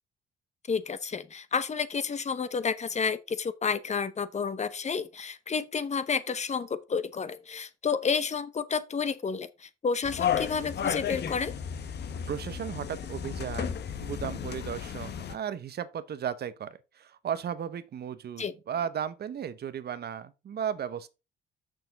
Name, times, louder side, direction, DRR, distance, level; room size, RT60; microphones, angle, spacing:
voice 1, 0.7-11.5 18.4-18.5, left 5 dB, 35° left, 0.9 m, -30 dB
sound 1, 10.0-15.4, left 8 dB, 55° left, 1.0 m, -33 dB
voice 2, 12.3-21.1, right 8 dB, 55° right, 0.8 m, -35 dB
6.7 x 6.3 x 4.0 m
cardioid pair, 90°, 20 cm